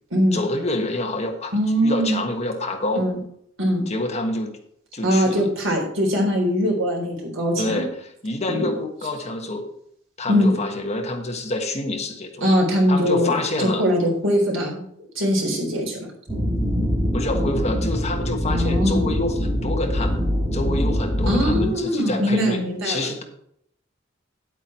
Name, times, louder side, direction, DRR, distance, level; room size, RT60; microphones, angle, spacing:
voice 1, 0.3-1.5 1.8-3.0 3.9-4.6 4.9-5.5 7.6-9.7 10.2-12.5 12.9-13.8 16.7-20.2 20.5-23.2, left 2 dB, 35° left, 4 dB, 1.4 m, -27 dB
voice 2, 1.5-2.2 3.0-3.2 3.6-3.8 5.0-7.8 8.5-8.7 10.3-10.5 12.4-14.8 15.2-16.0 18.5-19.1 21.3-23.0, equal, 90° right, 0 dB, 3.8 m, -21 dB
sound 1, 16.3-21.7, equal, 15° right, 2.8 m, -23 dB
9.9 x 8.4 x 4.4 m, 0.71 s
head